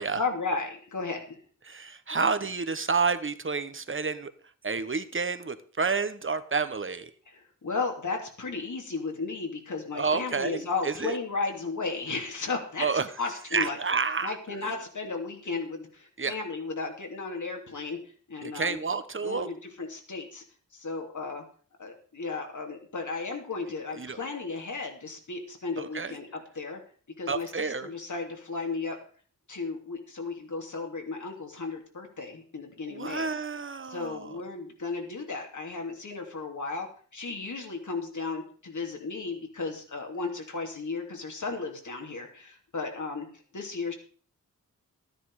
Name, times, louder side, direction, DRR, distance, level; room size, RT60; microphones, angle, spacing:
voice 1, 0.2-1.4 7.3-12.9 13.2-13.8 14.2-18.0 18.3-18.8 19.2-20.4 20.7-21.4 21.8-26.8 27.2-29.0 29.5-33.3 33.9-43.3 43.5-43.9, left 4 dB, 65° left, 2 dB, 3.0 m, -34 dB
voice 2, 1.7-4.3 4.6-7.1 9.9-11.2 12.8-13.1 13.5-14.4 16.2-16.3 18.4-19.5 23.9-24.2 25.8-26.1 27.3-27.9 32.9-34.4, right 4 dB, 40° right, 12 dB, 1.1 m, -29 dB
13.5 x 10.0 x 4.9 m, 0.44 s
wide cardioid pair, 90°, 32 cm